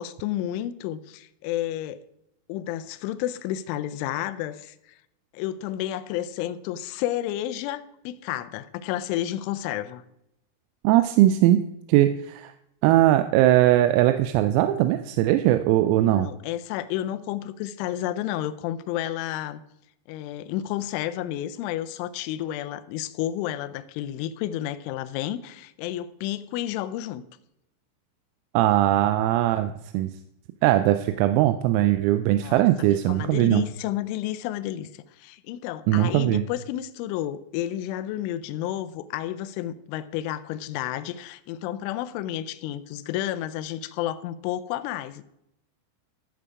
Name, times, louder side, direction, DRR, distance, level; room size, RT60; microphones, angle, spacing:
voice 1, 0.0-2.0 2.5-4.8 5.3-10.0 16.0-19.6 20.1-27.2 32.3-32.6 33.1-45.2, left 12 dB, 80° left, 12 dB, 2.9 m, -31 dB
voice 2, 10.9-11.6 11.9-12.5 12.8-16.3 28.6-30.1 30.6-33.6 35.9-36.4, right 14 dB, 90° right, 9 dB, 3.3 m, -20 dB
13.5 x 7.5 x 4.8 m, 0.80 s
omnidirectional pair, 6.0 m